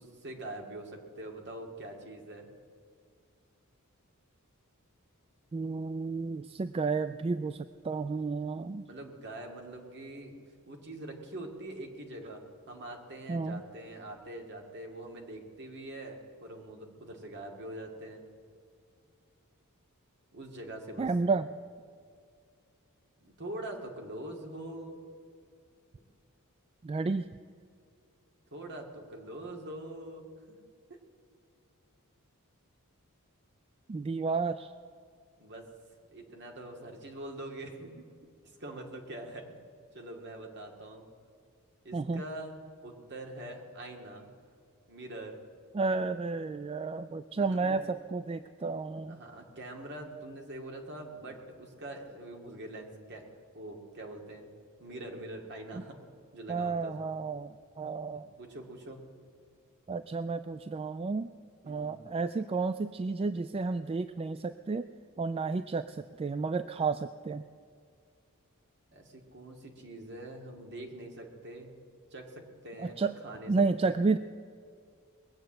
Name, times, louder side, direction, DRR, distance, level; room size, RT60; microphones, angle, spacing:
voice 1, 0.0-2.5 8.8-10.4 10.7-18.2 20.3-21.1 23.2-25.0 28.5-30.6 30.9-31.0 35.4-35.7 36.1-38.1 38.6-39.6 39.9-41.1 41.8-44.3 44.9-45.4 47.3-47.8 49.1-53.2 53.5-54.5 54.8-56.0 56.3-57.1 58.1-59.0 61.6-62.0 68.9-71.7 72.1-73.5 73.8-74.0, right 1 dB, 50° right, 2 dB, 2.2 m, -44 dB
voice 2, 5.5-8.9 13.3-13.6 21.0-21.5 26.8-27.3 33.9-34.7 41.9-42.2 45.7-49.2 55.7-55.8 56.5-58.3 59.9-61.3 61.7-64.9 65.2-67.4 72.8-73.1 73.5-74.2, right 4 dB, 25° right, 11 dB, 0.3 m, -31 dB
21.0 x 8.2 x 7.7 m, 2.3 s
head